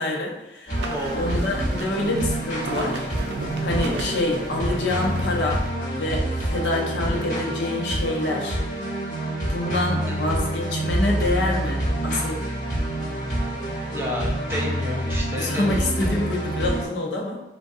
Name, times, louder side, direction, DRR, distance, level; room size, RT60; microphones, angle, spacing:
voice 1, 0.0-0.8 1.1-3.1 3.6-5.7 6.0-8.6 9.4-12.3 15.4-17.4, left 2 dB, 85° left, -1 dB, 0.7 m, -26 dB
sound 1, 0.7-16.8, right 1 dB, 45° left, 1.0 m, -27 dB
sound 2, 0.7-5.7, right 2 dB, 75° right, 0.4 m, -35 dB
voice 2, 0.8-1.4 10.2-10.4 13.9-15.8, equal, 15° right, -2 dB, 0.4 m, -31 dB
3.5 x 2.2 x 2.6 m, 1.0 s
head